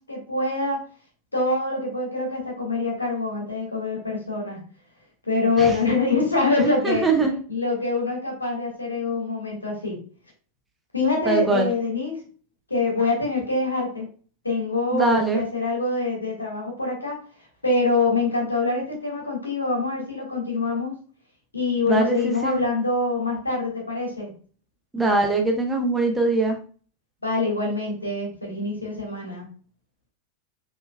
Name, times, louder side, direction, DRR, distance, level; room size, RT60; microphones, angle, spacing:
voice 1, 0.1-0.8 1.3-4.6 5.2-7.1 7.5-10.0 10.9-12.2 12.7-14.1 14.4-20.9 21.5-24.3 27.2-29.4, left 3 dB, 80° left, -1 dB, 1.6 m, -25 dB
voice 2, 6.8-7.4 11.3-11.7 14.9-15.4 21.9-22.6 24.9-26.6, right 3 dB, 10° right, 2 dB, 0.8 m, -22 dB
5.3 x 3.3 x 2.2 m, 0.41 s
figure-of-eight pair, 90°, 0 cm